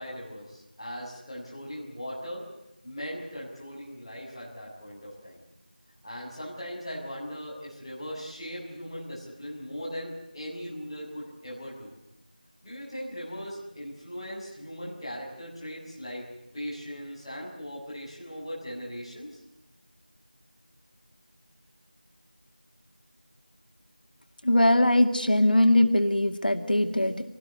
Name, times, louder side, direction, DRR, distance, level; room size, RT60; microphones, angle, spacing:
voice 1, 0.0-2.4 2.8-5.4 6.0-11.9 12.6-16.2 16.5-19.4, equal, ahead, -17 dB, 3.5 m, -39 dB
voice 2, 24.4-27.3, left 1 dB, 70° left, 6 dB, 2.2 m, -21 dB
25.0 x 19.0 x 7.9 m, 0.90 s
figure-of-eight pair, 180°, 5 cm